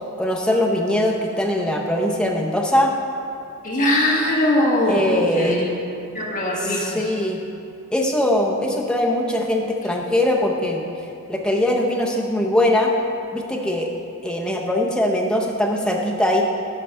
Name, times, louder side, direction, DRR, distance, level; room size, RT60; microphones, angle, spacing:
voice 1, 0.2-2.9 4.9-5.6 6.6-7.4 7.9-10.8 11.3-12.9 13.3-13.9 14.2-16.4, left 1 dB, 5° left, -1 dB, 0.5 m, -21 dB
voice 2, 3.6-5.7 6.1-7.1, left 1 dB, 35° left, -3 dB, 1.1 m, -21 dB
11.5 x 4.6 x 4.4 m, 2.7 s
head